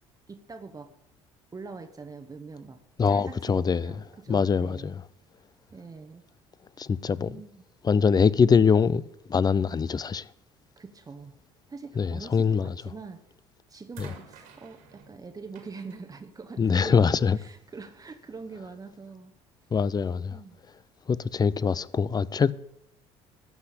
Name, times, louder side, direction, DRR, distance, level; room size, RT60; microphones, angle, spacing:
voice 1, 0.3-0.9 1.5-5.0 5.7-6.2 7.2-7.6 10.8-11.4 11.7-13.2 13.7-17.0 17.3-19.3 20.3-20.6, right 4 dB, 25° right, 1.0 m, -43 dB
voice 2, 3.0-3.9 4.3-5.0 6.8-7.3 7.8-9.0 9.3-10.2 12.0-12.7 14.0-14.1 16.6-17.4 19.7-20.4 21.1-22.5, left 6 dB, 25° left, 0.5 m, -23 dB
pinball-ball being launched by plunger, 13.0-13.3 13.9-17.2 18.2-18.3, right 6 dB, 75° right, 2.2 m, -53 dB
12.5 x 5.9 x 8.3 m
hypercardioid pair, 65°, 15 cm